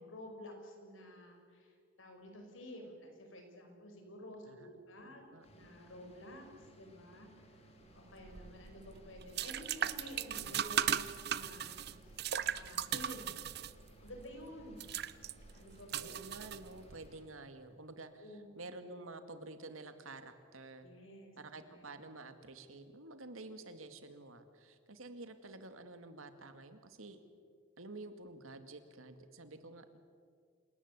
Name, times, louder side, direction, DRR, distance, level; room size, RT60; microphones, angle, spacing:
voice 1, 0.0-7.3 7.9-12.2 12.5-13.4 14.0-14.8 15.5-16.1 18.2-18.6 20.8-21.3 21.6-21.9, equal, 75° left, 3 dB, 5.3 m, -51 dB
voice 2, 5.0-5.5 16.0-20.9 21.4-27.2 27.8-30.0, right 2 dB, 90° right, 9 dB, 2.1 m, -50 dB
sound 1, 5.4-17.2, right 1 dB, 30° left, 3.0 m, -61 dB
sound 2, 8.2-17.1, right 9 dB, 50° right, 0.7 m, -38 dB
28.0 x 18.0 x 8.3 m, 2.1 s
head